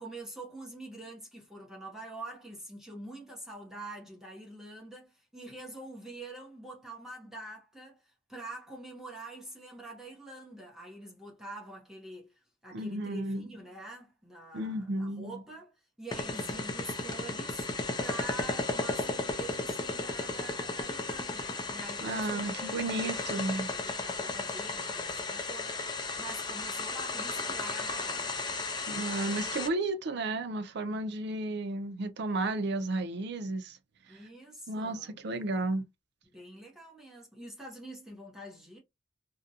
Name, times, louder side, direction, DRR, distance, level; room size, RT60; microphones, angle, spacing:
voice 1, 0.0-17.7 18.0-22.7 23.0-28.4 34.1-35.7 36.3-38.8, right 1 dB, 5° right, 0.7 m, -46 dB
voice 2, 12.7-13.5 14.5-15.4 22.0-23.7 28.9-33.8 34.7-35.8, right 2 dB, 65° right, 0.5 m, -33 dB
sound 1, 16.1-29.7, left 3 dB, 25° left, 0.5 m, -34 dB
2.5 x 2.1 x 2.7 m
head